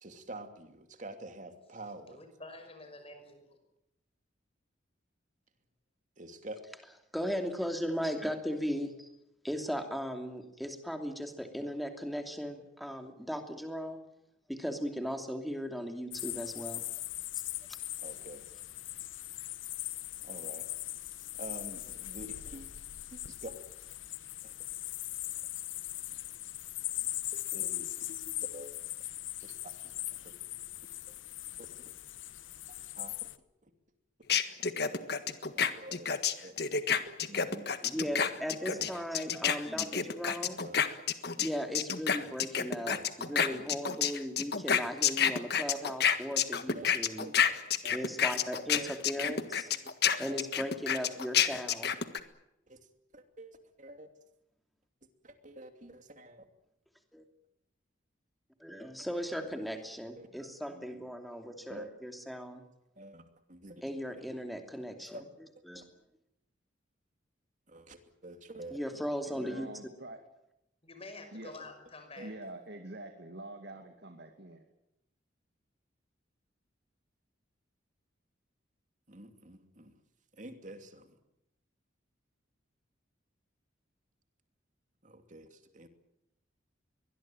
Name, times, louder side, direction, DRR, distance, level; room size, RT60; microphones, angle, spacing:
voice 1, 0.0-2.2 6.2-6.6 18.0-18.5 20.2-20.7 21.3-22.7 23.1-23.5 24.4-24.5 27.0-28.7 29.4-30.4 31.1-31.2 31.6-32.0 33.0-33.3 33.6-33.7 34.3-34.4 35.5-36.5 36.9-37.7 38.7-38.9 40.6-40.8 42.9-43.7 45.5-45.7 46.7-47.5 47.8-48.1 48.7-48.9 49.2-49.4 49.8-50.7 51.1-51.4 52.7-52.8 53.1-54.1 55.2-56.4 59.3-59.5 60.2-60.3 61.7-61.9 63.0-63.2 63.5-63.8 64.2-64.3 65.0-65.3 65.7-65.8 67.7-68.8 71.6-71.7 72.2-72.3 79.1-79.9 80.3-81.2 85.0-85.9, right 1 dB, 40° right, 7 dB, 2.8 m, -48 dB
voice 2, 2.1-3.6 70.8-72.3, left 2 dB, 30° left, 7 dB, 5.9 m, -48 dB
voice 3, 7.1-9.1 9.4-14.0 14.5-16.8 17.7-17.8 37.8-40.6 41.4-47.3 47.9-49.7 50.2-51.9 57.1-57.2 58.6-62.6 63.8-65.2 65.7-65.9 68.7-69.7, equal, ahead, 5 dB, 2.8 m, -37 dB
sound 1, 16.1-33.4, left 15 dB, 85° left, 1.1 m, -40 dB
sound 2, 34.3-41.5 41.7-52.2, left 8 dB, 55° left, 1.6 m, -29 dB
voice 4, 69.3-70.2 71.3-71.5 72.2-74.6, right 2 dB, 60° right, 5 dB, 2.4 m, -46 dB
23.0 x 20.5 x 9.1 m, 0.85 s
head